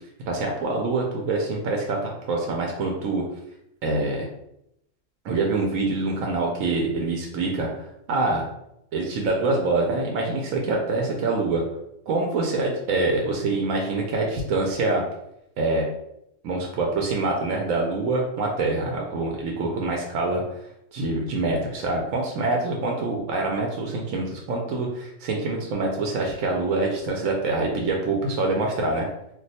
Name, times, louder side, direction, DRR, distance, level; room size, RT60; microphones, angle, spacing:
voice 1, 0.3-3.2 3.8-4.3 5.2-7.7 8.1-8.5 8.9-11.6 12.1-15.0 15.6-15.8 16.4-20.4 20.9-29.1, right 3 dB, 90° right, 0 dB, 1.0 m, -25 dB
2.4 x 2.2 x 4.0 m, 0.80 s
omnidirectional pair, 1.4 m